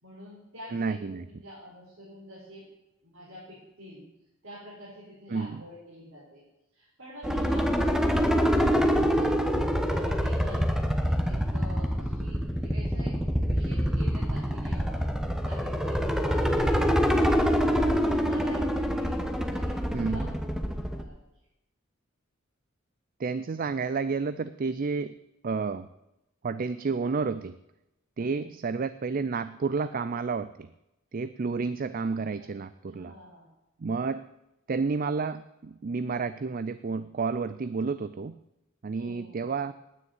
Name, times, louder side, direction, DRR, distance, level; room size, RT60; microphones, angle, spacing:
voice 1, 0.0-2.7 3.0-4.0 4.4-6.4 6.7-15.0 15.4-16.9 17.2-21.2 28.2-28.4 32.4-32.5 32.9-33.5 39.0-39.6, equal, 75° right, -7 dB, 5.0 m, -47 dB
voice 2, 0.7-1.3 5.3-5.6 19.9-20.3 23.2-25.1 25.4-25.9 26.4-27.6 28.2-30.7 31.1-33.1 33.8-34.3 34.7-38.4 38.8-39.7, right 4 dB, 45° right, 14 dB, 0.4 m, -30 dB
sound 1, 7.2-21.0, equal, 5° right, 1.0 m, -26 dB
9.6 x 9.5 x 9.4 m, 0.91 s
head